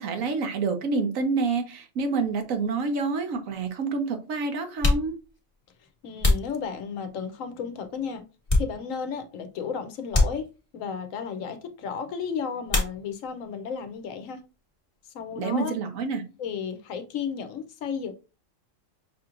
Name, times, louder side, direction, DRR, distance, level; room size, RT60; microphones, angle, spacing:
voice 1, 0.0-5.1 15.4-16.2, right 4 dB, 85° right, 1.3 m, -28 dB
sound 1, 2.9-3.0 3.9-4.1 4.6-7.3 7.8-9.2 9.5-9.6 10.1-10.9 12.7-13.5 13.7-14.4 14.7-16.8, left 2 dB, 25° left, 1.2 m, -28 dB
voice 2, 6.0-8.2 8.5-10.5 10.7-14.4 15.1-15.8 16.4-18.1, left 6 dB, 80° left, 1.1 m, -33 dB
5.9 x 2.9 x 2.4 m
omnidirectional pair, 1.4 m